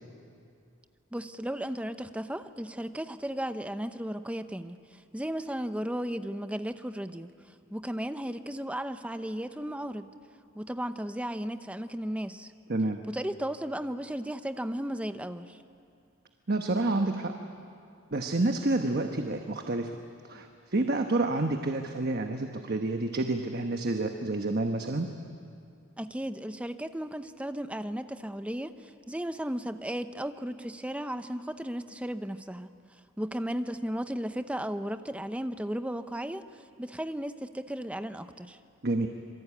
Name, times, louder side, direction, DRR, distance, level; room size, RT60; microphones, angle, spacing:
voice 1, 1.1-4.8 5.1-7.3 7.7-10.1 10.5-12.5 13.1-15.6 26.0-32.7 33.2-36.4 36.8-38.6, equal, 5° right, 9 dB, 0.8 m, -35 dB
voice 2, 16.5-17.3 18.1-20.0 20.2-25.1 38.8-39.1, right 2 dB, 50° right, 5 dB, 1.2 m, -29 dB
26.5 x 23.5 x 8.6 m, 2.5 s
head